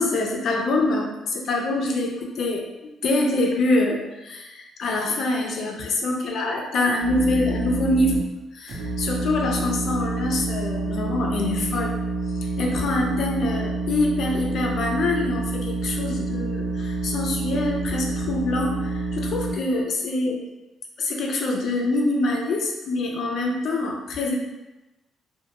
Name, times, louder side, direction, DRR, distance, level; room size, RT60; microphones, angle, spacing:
voice 1, 0.0-2.7 3.0-8.2 8.5-12.0 12.4-20.4 21.0-24.4, left 2 dB, 65° left, 1 dB, 0.5 m, -25 dB
sound 1, 7.0-8.2 8.7-19.5, right 2 dB, 80° right, 0.8 m, -28 dB
2.3 x 2.2 x 2.9 m, 1.0 s
cardioid pair, 90°, 0 cm